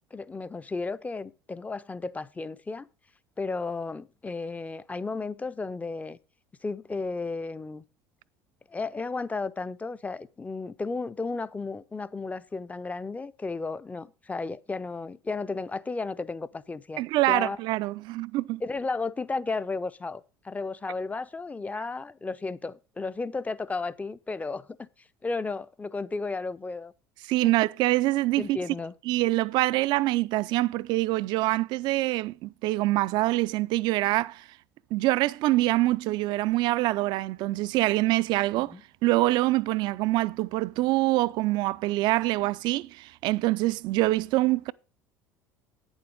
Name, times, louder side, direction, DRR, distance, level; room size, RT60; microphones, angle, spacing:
voice 1, 0.1-2.9 3.4-6.2 6.6-7.8 8.7-17.6 18.6-24.9 25.2-26.9 28.4-28.9 38.6-38.8, left 3 dB, 15° left, 0.5 m, -33 dB
voice 2, 17.0-18.6 27.3-28.6 29.1-34.4 34.9-38.7 39.0-44.7, right 18 dB, 50° right, 0.4 m, -25 dB
9.0 x 7.1 x 5.2 m
figure-of-eight pair, 65°, 10 cm